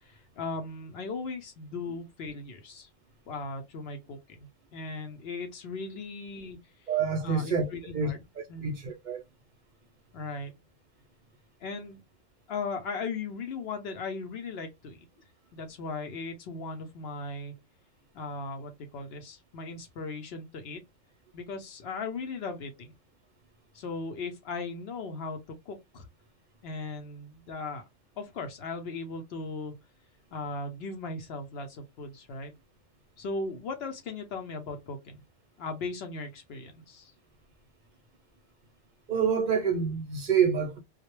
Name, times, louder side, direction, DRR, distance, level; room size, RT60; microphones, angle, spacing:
voice 1, 0.0-2.9 3.3-6.6 7.2-8.2 8.5-8.7 10.1-10.5 11.6-12.0 12.5-15.1 15.5-17.5 18.1-20.8 21.3-22.9 23.7-26.1 26.6-27.8 28.2-29.8 30.3-32.5 33.2-35.2 35.6-37.1, left 3 dB, 60° left, 0.7 m, -37 dB
voice 2, 6.9-7.7 7.9-9.2 39.1-40.8, right 6 dB, 50° right, 0.6 m, -27 dB
2.2 x 2.0 x 2.9 m
omnidirectional pair, 1.3 m